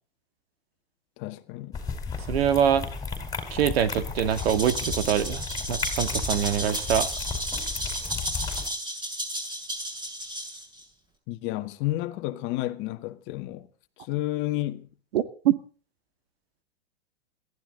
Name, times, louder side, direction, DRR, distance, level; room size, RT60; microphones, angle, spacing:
voice 1, 1.2-1.8 11.3-13.7 14.0-14.9, left 16 dB, 35° left, 1.8 m, -31 dB
sound 1, 1.7-8.7, left 5 dB, 10° left, 4.7 m, -34 dB
voice 2, 2.3-2.9 3.5-5.4 5.7-7.1 15.1-15.5, right 9 dB, 70° right, 2.2 m, -24 dB
Rattle (instrument), 4.3-10.8, equal, 15° right, 7.6 m, -33 dB
22.0 x 15.0 x 3.9 m
hypercardioid pair, 135°, 32 cm